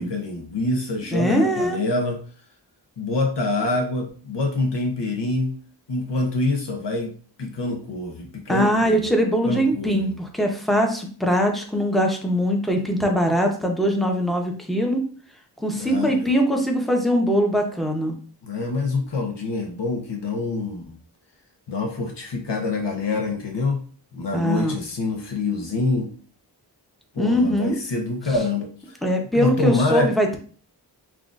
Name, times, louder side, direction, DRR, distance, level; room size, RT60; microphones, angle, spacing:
voice 1, 0.0-2.2 3.0-5.6 5.9-7.1 7.4-9.0 9.5-10.1 15.8-16.4 18.4-21.0 21.7-23.9 24.1-26.1 27.1-29.0 29.3-30.1, left 3 dB, 75° left, 2 dB, 0.8 m, -26 dB
voice 2, 1.1-1.8 8.5-15.0 15.6-18.2 24.3-24.7 27.2-27.8 29.0-30.4, equal, ahead, 2 dB, 0.8 m, -22 dB
6.0 x 2.4 x 2.4 m, 0.42 s
wide cardioid pair, 75°, 43 cm